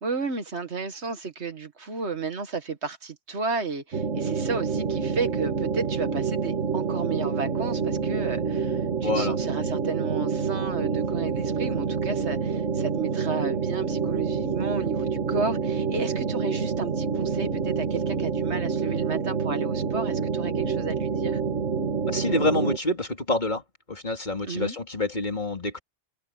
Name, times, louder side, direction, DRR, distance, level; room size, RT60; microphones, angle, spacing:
voice 1, 0.0-21.4 24.4-24.8, right 4 dB, 60° right, 1.8 m, -32 dB
sound 1, 3.9-22.8, right 5 dB, 85° right, 2.6 m, -27 dB
voice 2, 9.0-9.4 22.1-23.6 23.9-25.8, left 2 dB, 35° left, 3.1 m, -27 dB
omnidirectional pair, 1.3 m